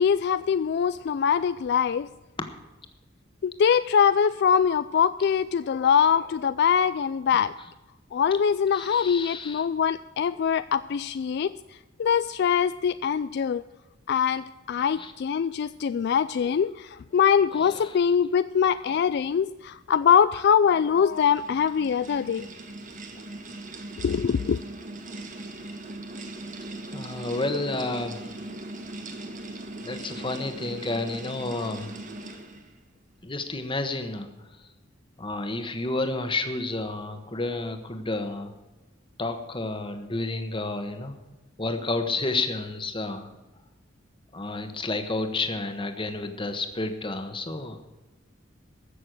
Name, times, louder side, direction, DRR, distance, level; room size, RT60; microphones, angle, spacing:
voice 1, 0.0-2.1 3.4-7.5 8.1-11.5 12.0-13.6 14.1-22.5 24.0-24.6, left 7 dB, 60° left, 14 dB, 0.3 m, -23 dB
voice 2, 8.7-9.7 15.0-15.1 17.6-18.0 18.8-19.0 26.9-28.3 29.8-31.9 33.2-34.3 35.2-38.5 39.2-41.2 41.6-43.3 44.3-47.8, left 2 dB, 25° left, 7 dB, 1.3 m, -30 dB
sound 1, 20.6-32.8, right 2 dB, 40° right, 1.4 m, -40 dB
14.5 x 6.7 x 7.8 m, 1.1 s
head